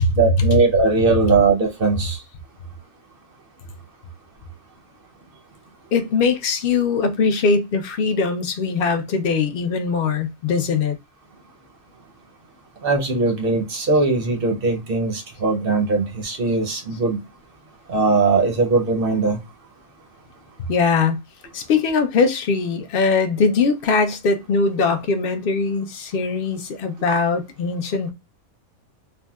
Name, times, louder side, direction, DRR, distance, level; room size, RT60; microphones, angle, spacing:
voice 1, 0.1-2.2 12.8-17.2 17.9-19.4, right 3 dB, 55° right, 0.7 m, -20 dB
voice 2, 5.9-10.9 20.6-21.2 21.5-28.1, left 4 dB, 60° left, 0.6 m, -21 dB
3.5 x 2.1 x 2.2 m
omnidirectional pair, 1.5 m